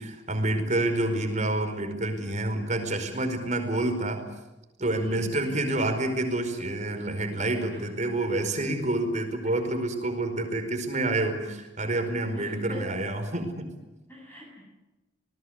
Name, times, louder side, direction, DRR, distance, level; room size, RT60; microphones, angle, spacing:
voice 1, 0.0-4.2 4.8-13.7, right 2 dB, 40° right, 6 dB, 4.9 m, -28 dB
voice 2, 5.0-5.6 7.7-7.8 12.3-13.0 14.1-14.6, equal, 10° left, -3 dB, 8.0 m, -41 dB
28.0 x 20.0 x 8.1 m, 1.0 s
head